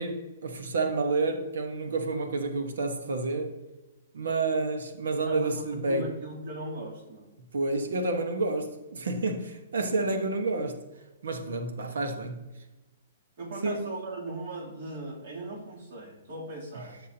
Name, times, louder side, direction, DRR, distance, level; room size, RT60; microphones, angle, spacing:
voice 1, 0.0-3.5 4.1-6.1 7.5-10.8 11.2-12.4 13.6-13.9, right 3 dB, 90° right, 1.4 m, -29 dB
voice 2, 5.3-7.3 13.4-17.0, right 2 dB, 55° right, 3.1 m, -38 dB
14.0 x 6.2 x 2.9 m
hypercardioid pair, 165°, 0 cm